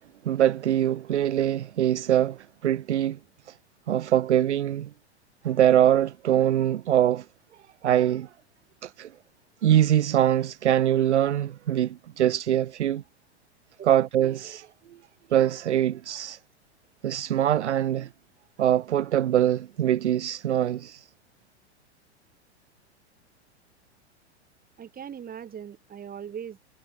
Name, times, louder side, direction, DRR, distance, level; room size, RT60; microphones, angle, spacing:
voice 1, 0.2-3.2 3.5-3.6 3.9-4.9 5.4-7.3 7.8-8.3 8.8-9.1 9.6-13.0 13.8-14.7 15.3-16.4 17.0-18.1 18.6-21.0, right 11 dB, 80° right, 0.7 m, -23 dB
voice 2, 24.8-26.6, right 8 dB, 25° right, 6.6 m, -39 dB
hypercardioid pair, 95°, 34 cm